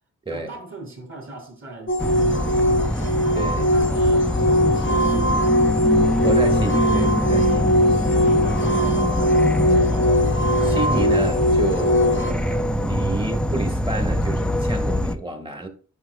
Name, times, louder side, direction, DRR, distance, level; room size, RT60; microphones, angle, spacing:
voice 1, 0.3-2.9 3.6-5.6 7.5-10.4, right 3 dB, 40° right, 3.6 m, -39 dB
sound 1, 1.9-12.3, equal, 35° left, 0.8 m, -21 dB
Insect / Frog, 2.0-15.1, left 1 dB, 5° left, 0.4 m, -23 dB
voice 2, 3.3-3.7 6.2-7.8 10.6-15.7, right 2 dB, 15° right, 1.6 m, -30 dB
10.5 x 5.5 x 2.3 m
wide cardioid pair, 100°, 33 cm